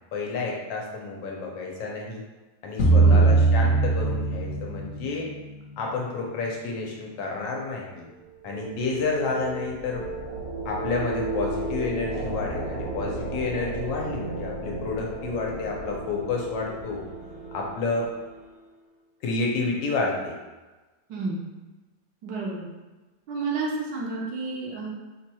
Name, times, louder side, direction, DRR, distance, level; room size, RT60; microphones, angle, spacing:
voice 1, 0.1-2.2 2.6-5.3 5.8-8.1 8.4-10.0 10.6-17.1 17.5-18.1 19.2-20.4, left 3 dB, 90° left, -1 dB, 1.4 m, -30 dB
sound 1, 2.8-5.9, right 3 dB, 60° left, 0.7 m, -21 dB
voice 2, 2.9-3.4 21.1-21.4 22.2-22.6 23.3-24.9, right 3 dB, 75° right, -2 dB, 1.3 m, -30 dB
sound 2, 8.1-18.7, right 2 dB, 60° right, 0.6 m, -34 dB
4.6 x 2.2 x 2.8 m, 1.2 s
omnidirectional pair, 2.0 m